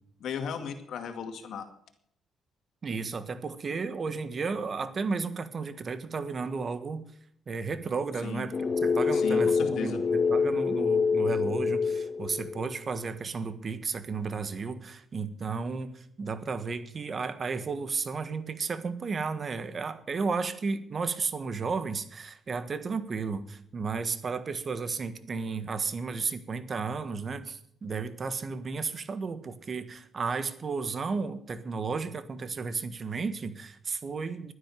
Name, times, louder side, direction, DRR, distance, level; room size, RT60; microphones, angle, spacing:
voice 1, 0.2-1.7 8.2-8.5 9.1-10.0, left 5 dB, 70° left, 6 dB, 2.2 m, -35 dB
voice 2, 2.8-7.0 7.5-34.5, right 4 dB, 40° right, 11 dB, 1.5 m, -33 dB
sound 1, 8.5-12.7, left 5 dB, 40° left, 0.6 m, -26 dB
12.0 x 10.0 x 7.7 m, 0.65 s
cardioid pair, 90°, 0 cm